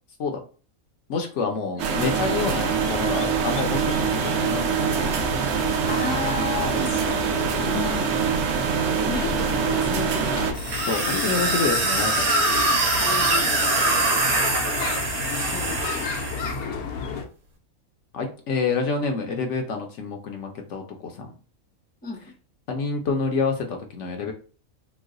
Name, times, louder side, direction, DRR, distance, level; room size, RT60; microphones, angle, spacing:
voice 1, 1.1-5.2 6.6-6.8 7.6-7.8 10.9-12.3 18.1-21.3 22.7-24.3, left 4 dB, 65° left, 3 dB, 0.9 m, -28 dB
sound 1, 1.8-10.5, right 7 dB, 65° right, 0.7 m, -24 dB
sound 2, 1.9-17.2, left 4 dB, 85° left, 1.1 m, -33 dB
voice 2, 5.9-7.4 7.7-8.1 9.0-10.6 13.0-13.5 15.4-16.1 22.0-22.2, left 5 dB, 10° left, -1 dB, 0.4 m, -33 dB
sound 3, 10.5-16.5, right 2 dB, 90° right, 1.2 m, -23 dB
3.0 x 2.1 x 3.6 m, 0.37 s
omnidirectional pair, 1.5 m